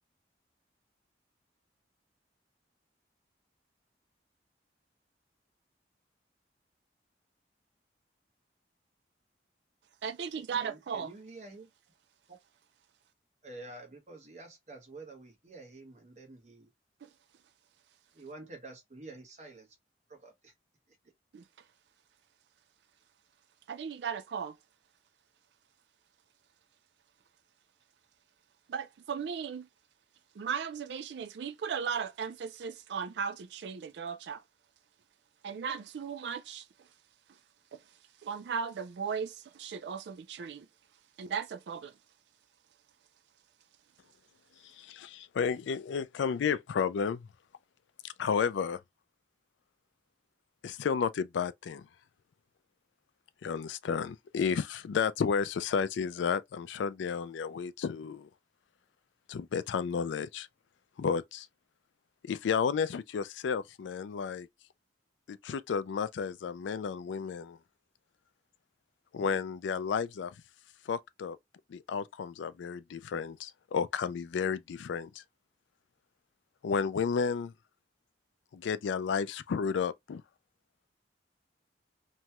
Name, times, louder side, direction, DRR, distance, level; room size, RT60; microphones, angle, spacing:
voice 1, 10.0-11.1 17.0-17.1 21.3-21.4 23.7-24.6 28.7-29.7 30.4-34.4 35.4-36.6 37.7-37.8 38.2-40.7 41.2-41.9, right 6 dB, 70° right, 0.4 m, -36 dB
voice 2, 10.6-11.7 12.3-12.4 13.4-16.7 18.1-19.7 20.1-20.5, right 2 dB, 40° right, 1.2 m, -48 dB
voice 3, 44.6-47.3 48.0-48.8 50.6-51.9 53.4-58.3 59.3-60.5 61.0-61.5 62.2-64.5 65.3-67.6 69.1-70.4 70.9-71.4 71.7-75.2 76.6-77.5 78.5-80.2, left 6 dB, 85° left, 0.3 m, -32 dB
3.0 x 2.3 x 2.8 m
head